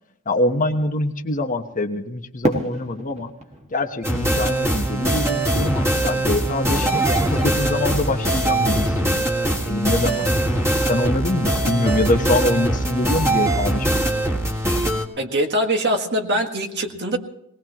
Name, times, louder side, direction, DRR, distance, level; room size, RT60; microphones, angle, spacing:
voice 1, 0.3-3.3 3.7-7.0 7.3-9.3 9.6-10.3 10.8-14.1, left 2 dB, 40° left, 5 dB, 1.1 m, -24 dB
Fireworks, 2.4-5.5, right 1 dB, 30° right, 1.6 m, -30 dB
sound 1, 4.0-15.0, right 1 dB, 15° right, 1.9 m, -22 dB
voice 2, 15.2-17.2, right 1 dB, 55° right, 4 dB, 1.7 m, -22 dB
20.5 x 19.5 x 3.0 m, 0.78 s
head